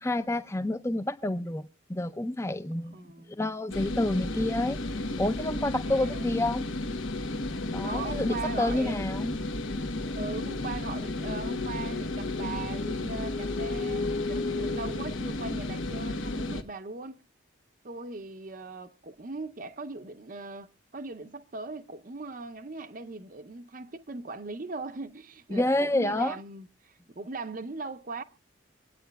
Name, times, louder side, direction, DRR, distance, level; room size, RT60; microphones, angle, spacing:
voice 1, 0.0-2.9 3.4-4.8 5.2-6.7 7.7-9.3 25.5-26.3, left 1 dB, 15° left, 0.5 m, -29 dB
voice 2, 2.9-3.4 5.8-6.3 7.8-9.0 10.1-17.2 17.8-28.2, right 3 dB, 40° right, 0.6 m, -39 dB
sound 1, 3.7-16.6, left 2 dB, 85° left, 1.1 m, -32 dB
26.0 x 9.1 x 2.3 m
head